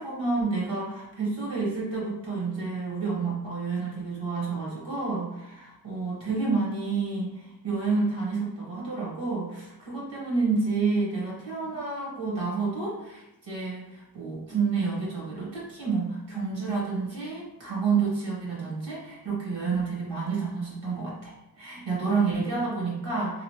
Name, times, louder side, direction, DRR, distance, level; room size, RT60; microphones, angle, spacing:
voice 1, 0.0-23.4, right 4 dB, 80° right, -4 dB, 1.0 m, -29 dB
3.0 x 2.4 x 2.8 m, 0.91 s
wide cardioid pair, 45°, 43 cm